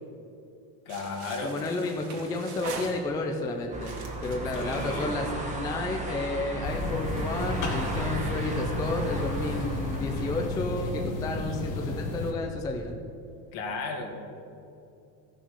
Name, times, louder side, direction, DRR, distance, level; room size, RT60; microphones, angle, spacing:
voice 1, 0.9-1.7 4.5-5.1 13.5-14.4, left 3 dB, 65° left, 2 dB, 2.2 m, -35 dB
sound 1, 0.9-3.4 3.8-6.0, right 4 dB, 70° right, 2.4 m, -42 dB
voice 2, 1.4-3.9 4.2-12.9, left 2 dB, 10° left, 2 dB, 0.3 m, -31 dB
sound 2, 3.7-10.5, right 2 dB, 15° right, 1.3 m, -35 dB
sound 3, 6.6-12.3, left 2 dB, 40° left, 1.4 m, -32 dB
16.0 x 6.2 x 6.4 m, 2.7 s
cardioid pair, 175°, 48 cm